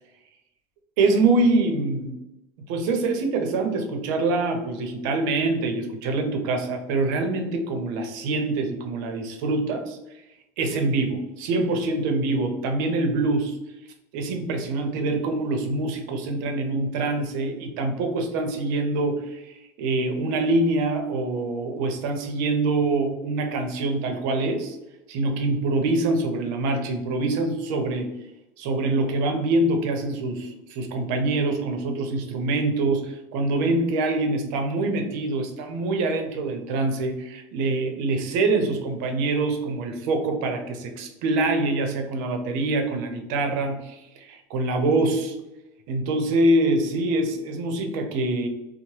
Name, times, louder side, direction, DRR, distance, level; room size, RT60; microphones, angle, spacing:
voice 1, 1.0-2.2 2.7-10.0 10.6-13.6 14.1-24.8 25.1-28.1 28.6-45.3 45.9-48.5, right 2 dB, 80° right, 4 dB, 0.6 m, -25 dB
2.9 x 2.0 x 3.0 m, 0.91 s
supercardioid pair, 135°, 10 cm